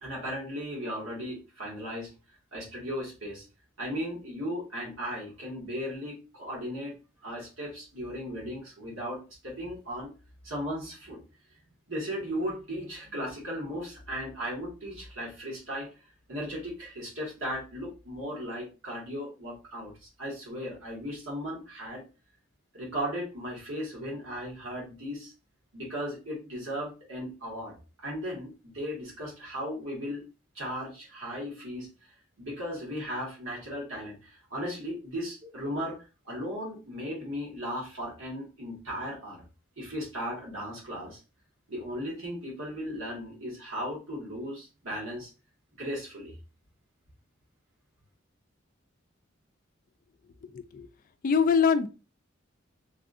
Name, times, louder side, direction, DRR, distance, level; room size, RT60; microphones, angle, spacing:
voice 1, 0.0-2.1 2.5-3.4 3.8-10.1 10.4-11.2 11.9-15.9 16.3-22.0 22.7-25.3 25.7-30.3 30.5-31.9 32.4-36.0 36.2-39.4 39.8-41.2 41.7-45.3 45.8-46.3, equal, 85° right, -3 dB, 1.7 m, -36 dB
voice 2, 50.5-50.9 51.2-51.9, left 6 dB, 45° left, 10 dB, 0.3 m, -23 dB
3.3 x 2.5 x 2.5 m, 0.31 s
head